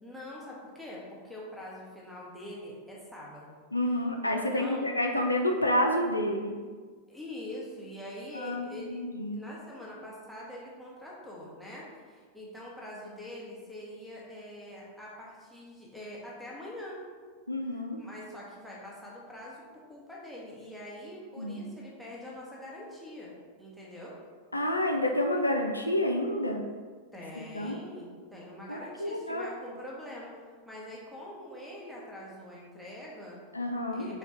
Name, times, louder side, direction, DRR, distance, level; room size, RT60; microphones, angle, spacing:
voice 1, 0.0-3.6 4.3-4.9 7.1-9.0 9.3-17.0 17.6-23.3 23.6-24.2 27.1-33.4 33.9-34.2, left 1 dB, ahead, -5 dB, 1.0 m, -44 dB
voice 2, 3.7-6.6 8.3-9.4 17.5-18.0 21.4-21.7 24.5-26.6 27.4-27.8 28.7-29.5 33.5-34.1, left 1 dB, 85° left, 3 dB, 0.4 m, -29 dB
4.2 x 2.3 x 4.3 m, 1.5 s
figure-of-eight pair, 90°, 0 cm